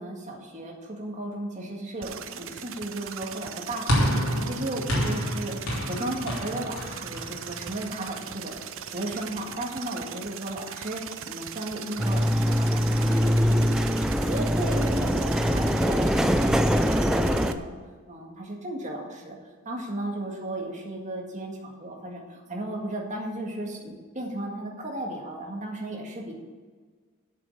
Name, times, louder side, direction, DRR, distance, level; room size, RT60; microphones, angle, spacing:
voice 1, 0.0-13.9 14.2-17.7 18.1-19.4 19.7-26.3, right 1 dB, 35° right, 0 dB, 1.9 m, -35 dB
sound 1, 2.0-17.5, right 9 dB, 65° right, 0.6 m, -39 dB
sound 2, 3.9-8.3, equal, 85° left, 3.1 m, -29 dB
sound 3, 12.0-17.5, equal, 5° right, 0.4 m, -23 dB
8.6 x 6.7 x 8.4 m, 1.5 s
head